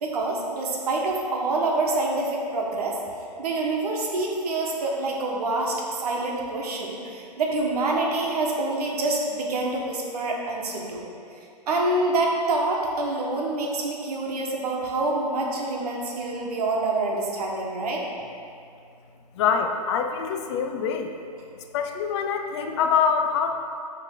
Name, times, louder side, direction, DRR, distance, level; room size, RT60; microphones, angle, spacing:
voice 1, 0.0-3.0 3.4-11.0 11.7-18.0, right 2 dB, 65° right, -1 dB, 1.2 m, -26 dB
voice 2, 19.3-21.1 21.7-23.5, left 6 dB, 40° left, 5 dB, 0.5 m, -24 dB
8.7 x 3.3 x 3.8 m, 2.4 s
hypercardioid pair, 125°, 21 cm